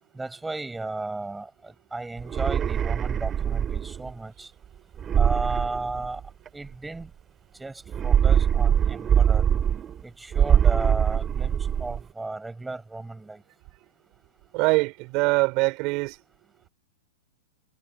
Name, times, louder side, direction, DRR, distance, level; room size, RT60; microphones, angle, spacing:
voice 1, 0.1-4.5 5.2-6.2 6.5-7.1 7.6-9.4 10.0-13.4, right 2 dB, 5° right, 6.6 m, -34 dB
sound 1, 2.2-4.1 5.0-6.5 7.9-10.0 10.3-12.0, right 8 dB, 20° right, 4.7 m, -23 dB
voice 2, 14.5-16.2, right 26 dB, 45° right, 6.0 m, -23 dB
hypercardioid pair, 130°, 0 cm